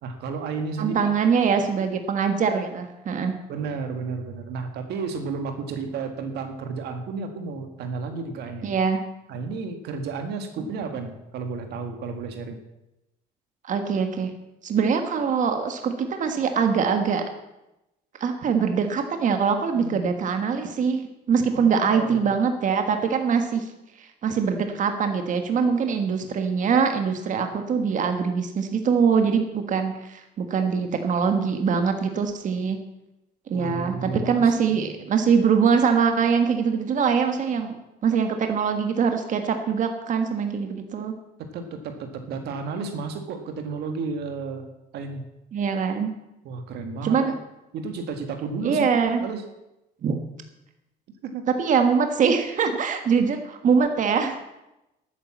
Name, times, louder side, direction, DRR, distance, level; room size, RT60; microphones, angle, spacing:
voice 1, 0.0-1.1 3.5-8.7 9.3-12.6 19.7-20.0 21.5-22.3 33.5-34.9 41.5-44.7 44.9-45.2 46.5-47.3 47.7-48.9 49.2-49.5 51.2-51.4, right 4 dB, 75° right, 6 dB, 1.8 m, -32 dB
voice 2, 0.8-3.3 8.6-9.0 13.6-14.3 14.6-17.3 18.2-23.7 24.0-32.8 33.5-37.8 38.0-41.1 45.5-46.1 47.0-47.3 48.6-49.2 50.0-50.2 51.5-54.4, right 6 dB, 50° right, 6 dB, 1.6 m, -23 dB
12.0 x 9.6 x 7.3 m, 0.93 s
cardioid pair, 110°, 17 cm